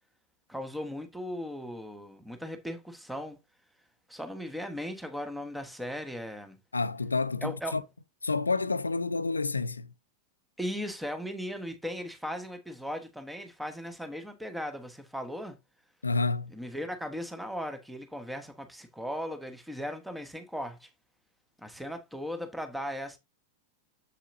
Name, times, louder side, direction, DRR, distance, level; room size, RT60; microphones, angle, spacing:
voice 1, 0.5-3.4 4.1-6.6 7.4-7.8 10.6-15.6 16.5-20.9 21.6-23.2, equal, 5° right, 1.2 m, -37 dB
voice 2, 6.7-7.8 8.2-9.9 16.0-16.5, left 3 dB, 80° left, 0.5 m, -29 dB
7.6 x 7.1 x 2.7 m
figure-of-eight pair, 90°, 0 cm